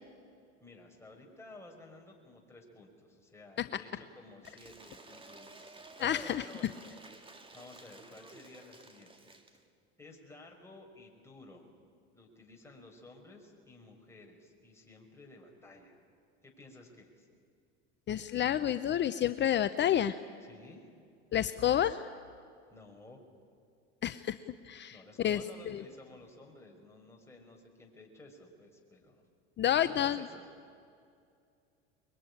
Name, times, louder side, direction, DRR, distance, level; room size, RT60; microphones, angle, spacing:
voice 1, 0.6-6.9 7.2-9.4 10.0-11.7 12.1-16.0 16.4-17.3 20.4-20.9 22.7-23.2 24.9-29.3 29.8-30.5, left 2 dB, 10° left, 0 dB, 5.6 m, -54 dB
Cheering / Applause / Crowd, 4.4-9.6, right 2 dB, 15° right, 2.3 m, -53 dB
voice 2, 6.0-6.4 18.1-20.2 21.3-22.0 24.0-24.4 24.6-25.4 25.7-25.8 29.6-30.2, left 10 dB, 35° left, 12 dB, 0.7 m, -29 dB
23.0 x 22.5 x 10.0 m, 2.3 s
supercardioid pair, 100°, 32 cm